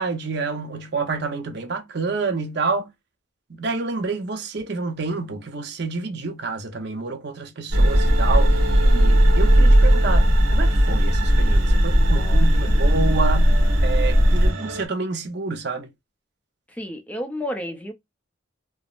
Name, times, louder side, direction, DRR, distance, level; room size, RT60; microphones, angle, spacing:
voice 1, 0.0-2.9 3.5-13.6 13.8-15.9, right 4 dB, 55° right, 0.7 m, -28 dB
sound 1, 7.7-14.5, equal, 15° right, 1.0 m, -17 dB
sound 2, 7.7-14.9, right 2 dB, 85° right, 0.8 m, -32 dB
voice 2, 12.2-12.8 16.7-17.9, equal, 5° left, 0.5 m, -32 dB
3.4 x 2.1 x 2.4 m
head